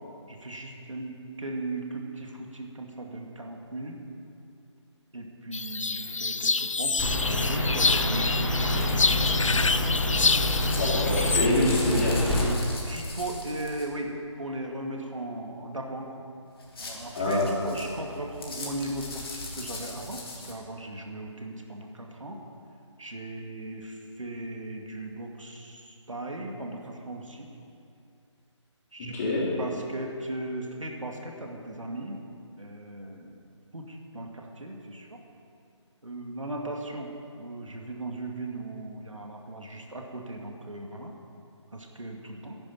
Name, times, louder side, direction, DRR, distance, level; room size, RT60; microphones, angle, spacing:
voice 1, 0.3-4.0 5.1-9.8 12.4-14.1 14.4-16.2 16.8-22.4 23.0-27.5 28.9-29.1 29.6-32.2 32.6-33.3 33.7-35.2 36.0-41.1 41.7-42.6, right 2 dB, 85° right, 1 dB, 2.3 m, -37 dB
sound 1, 5.5-11.5, left 4 dB, 90° left, 0.5 m, -27 dB
sound 2, 6.4-13.9 16.6-20.6, left 2 dB, 50° left, 2.6 m, -41 dB
sound 3, 7.0-12.4, left 1 dB, ahead, 2.1 m, -27 dB
voice 2, 10.8-12.1 17.1-17.5 29.0-29.5, left 1 dB, 30° left, -6 dB, 3.8 m, -26 dB
10.5 x 10.0 x 9.2 m, 2.5 s
figure-of-eight pair, 155°, 16 cm